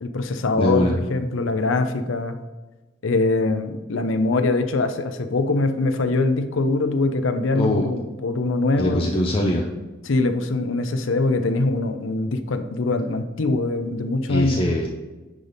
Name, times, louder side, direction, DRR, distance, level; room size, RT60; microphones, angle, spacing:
voice 1, 0.0-2.4 3.0-9.0 10.1-14.7, left 2 dB, 90° left, 8 dB, 0.6 m, -23 dB
voice 2, 0.6-1.0 7.5-7.9 8.8-9.7 14.3-14.9, left 1 dB, 30° left, 0 dB, 0.6 m, -22 dB
9.9 x 3.5 x 4.0 m, 1.2 s
head